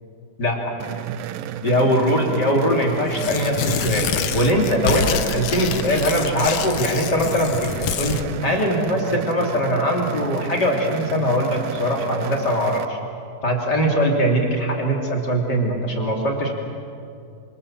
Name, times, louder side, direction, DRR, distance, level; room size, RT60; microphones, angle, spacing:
sound 1, 0.8-12.9, right 10 dB, 75° right, 2.4 m, -32 dB
voice 1, 1.6-4.1 4.3-13.0 13.4-16.5, equal, 30° left, 0 dB, 3.3 m, -21 dB
Tearing, 3.1-8.2, left 8 dB, 75° left, 1.5 m, -27 dB
27.0 x 26.0 x 7.4 m, 2.5 s
omnidirectional pair, 4.3 m